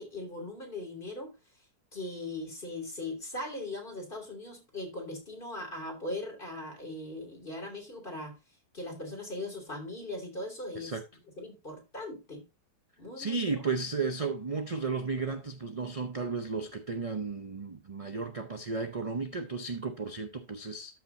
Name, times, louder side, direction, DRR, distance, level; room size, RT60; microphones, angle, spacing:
voice 1, 0.0-1.3 1.9-8.4 8.7-10.9 11.4-12.4 13.0-13.5, left 2 dB, 30° left, 3.1 m, -39 dB
voice 2, 13.2-21.0, right 4 dB, 40° right, 0.4 m, -34 dB
13.0 x 5.9 x 2.6 m
omnidirectional pair, 1.7 m